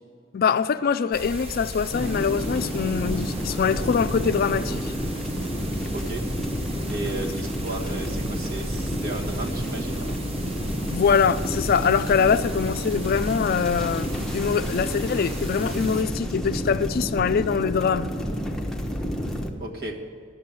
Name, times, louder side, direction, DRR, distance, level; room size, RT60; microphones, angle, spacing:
voice 1, 0.3-4.9 10.9-18.1, left 6 dB, 50° left, 12 dB, 0.4 m, -23 dB
sound 1, 1.1-16.0, right 1 dB, 30° right, 1.1 m, -37 dB
sound 2, 1.9-19.5, equal, ahead, 0.8 m, -30 dB
voice 2, 5.9-6.3 6.9-10.2 19.6-20.0, right 2 dB, 55° right, -1 dB, 1.6 m, -34 dB
12.0 x 6.7 x 8.6 m, 2.3 s
head